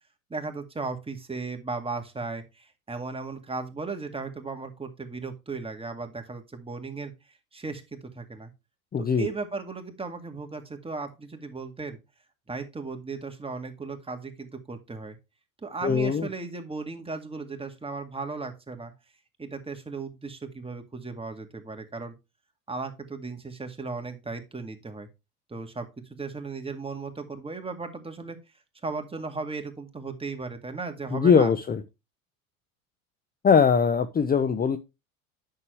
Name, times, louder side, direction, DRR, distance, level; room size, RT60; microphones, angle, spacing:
voice 1, 0.3-8.5 9.0-12.0 12.5-15.2 15.6-18.9 19.4-22.1 22.7-25.1 25.5-28.4 28.8-31.5, right 4 dB, 15° right, 5 dB, 2.0 m, -36 dB
voice 2, 8.9-9.3 15.8-16.3 31.1-31.8 33.4-34.8, left 6 dB, 20° left, 11 dB, 0.8 m, -21 dB
9.6 x 6.7 x 3.2 m, 0.25 s
hypercardioid pair, 80°, 43 cm